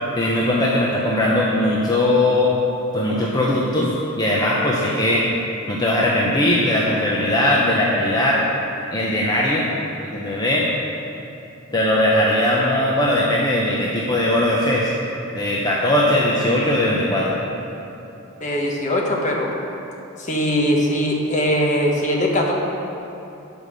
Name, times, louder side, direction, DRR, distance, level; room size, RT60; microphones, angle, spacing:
voice 1, 0.2-2.5 2.9-3.9 4.2-5.2 5.7-8.4 8.9-9.7 10.0-10.7 11.7-14.9 15.3-17.4, left 1 dB, 20° left, -5 dB, 0.7 m, -19 dB
voice 2, 18.4-19.5 20.2-22.5, equal, 35° left, -1 dB, 1.1 m, -21 dB
8.4 x 5.3 x 6.4 m, 2.8 s
head